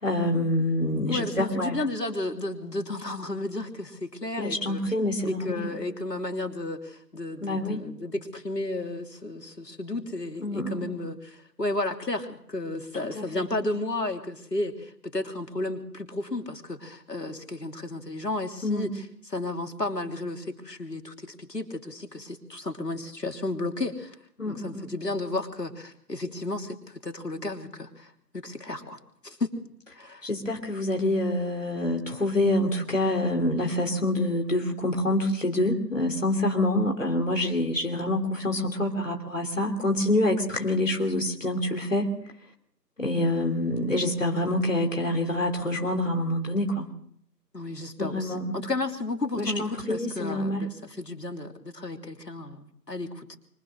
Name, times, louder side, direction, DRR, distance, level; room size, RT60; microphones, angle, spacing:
voice 1, 0.0-1.8 4.4-5.8 7.4-7.8 10.4-10.9 13.1-13.5 18.6-18.9 24.4-24.9 30.2-42.1 43.0-46.9 48.0-48.6 49.4-50.6, left 1 dB, 50° left, 2 dB, 3.1 m, -26 dB
voice 2, 1.1-4.8 5.2-24.1 24.4-29.5 29.9-30.3 47.5-53.4, left 2 dB, 70° left, 4 dB, 3.2 m, -33 dB
25.0 x 17.0 x 6.5 m, 0.68 s
figure-of-eight pair, 180°, 50 cm